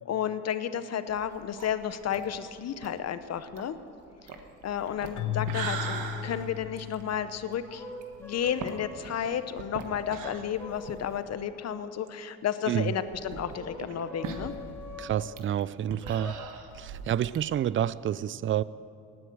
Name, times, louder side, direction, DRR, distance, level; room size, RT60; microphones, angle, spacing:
voice 1, 0.0-3.8 4.6-6.0 6.2-7.8 8.2-14.5, left 9 dB, 55° left, 12 dB, 0.9 m, -32 dB
sound 1, 1.1-11.3 11.7-11.8 12.1-12.2 12.9-17.4, right 5 dB, 90° right, 1.5 m, -41 dB
Keyboard (musical), 5.2-7.4, left 11 dB, 85° left, 0.8 m, -35 dB
sound 2, 6.1-6.7 7.6-9.2 10.0-15.2 16.0-16.3, left 2 dB, 5° left, 2.6 m, -45 dB
voice 2, 15.0-16.3 16.7-18.6, right 10 dB, 40° right, 19 dB, 0.4 m, -29 dB
18.5 x 9.7 x 7.8 m, 2.7 s
cardioid pair, 90°, 30 cm